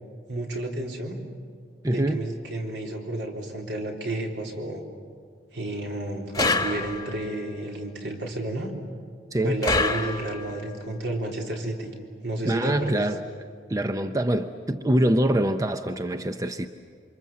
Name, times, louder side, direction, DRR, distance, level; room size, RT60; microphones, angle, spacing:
voice 1, 0.3-1.2 1.9-4.8 5.5-8.7 9.4-11.9 12.2-13.1, right 1 dB, 75° right, 0 dB, 3.9 m, -31 dB
voice 2, 1.8-2.2 9.3-9.6 12.4-13.2 13.7-16.7, right 1 dB, 20° right, 8 dB, 0.6 m, -24 dB
sound 1, 6.3-7.3 9.6-10.6, left 3 dB, 20° left, 1.3 m, -26 dB
28.5 x 25.5 x 7.5 m, 2.2 s
head